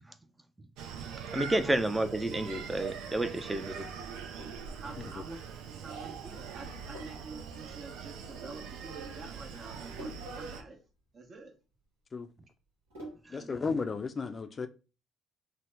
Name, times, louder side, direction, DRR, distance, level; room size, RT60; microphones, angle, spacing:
Screaming, 0.8-10.6, right 6 dB, 75° right, 0.4 m, -42 dB
voice 1, 1.3-3.9 13.3-13.4, right 1 dB, 15° right, 0.5 m, -30 dB
Sink (filling or washing), 4.4-13.5, right 1 dB, 90° right, 1.0 m, -51 dB
voice 2, 4.8-5.4 5.7-10.8 11.1-11.5 13.3-13.6, right 3 dB, 50° right, 0.9 m, -48 dB
voice 3, 13.3-14.7, left 4 dB, 40° left, 0.4 m, -34 dB
2.8 x 2.1 x 3.3 m
hypercardioid pair, 55°, 0 cm